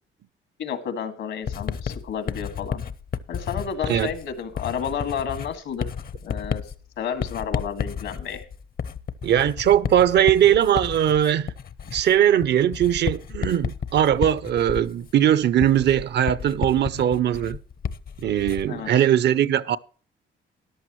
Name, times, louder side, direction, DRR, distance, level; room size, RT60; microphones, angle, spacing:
voice 1, 0.6-2.8 3.3-5.8 6.2-6.6 7.0-8.4 18.7-18.9, left 7 dB, 80° left, 2.0 m, -31 dB
Writing, 1.5-18.8, left 7 dB, 50° left, 0.7 m, -32 dB
voice 2, 9.2-11.5 11.9-17.6 18.2-19.8, right 10 dB, 60° right, 0.6 m, -20 dB
14.0 x 11.0 x 3.0 m
cardioid pair, 90°, 20 cm